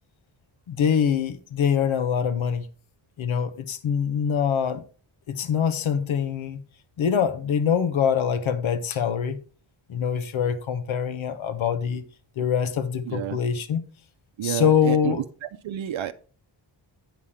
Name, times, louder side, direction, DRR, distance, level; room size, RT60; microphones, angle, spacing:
voice 1, 0.7-2.7 3.2-4.8 5.3-6.6 7.0-9.4 9.9-12.0 12.4-13.8 14.4-15.2, left 7 dB, 85° left, 0.9 m, -24 dB
voice 2, 13.1-13.4 14.4-16.1, right 11 dB, 75° right, 0.7 m, -30 dB
9.4 x 5.7 x 4.8 m
wide cardioid pair, 95°, 46 cm